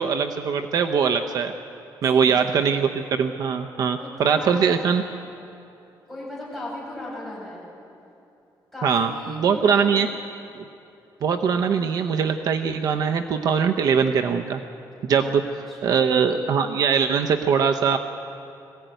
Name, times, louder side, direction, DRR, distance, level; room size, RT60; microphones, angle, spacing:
voice 1, 0.0-1.5 2.0-5.0 8.8-9.1 9.4-10.1 10.6-10.7 11.2-14.6 15.0-15.4 15.8-18.0, right 6 dB, 55° right, 5 dB, 0.8 m, -21 dB
voice 2, 2.1-2.8 4.0-5.0 6.1-7.6 8.7-10.1 15.2-15.3 15.7-16.1, left 1 dB, 5° left, -7 dB, 7.3 m, -37 dB
21.0 x 15.5 x 9.2 m, 2.8 s
cardioid pair, 175°, 8 cm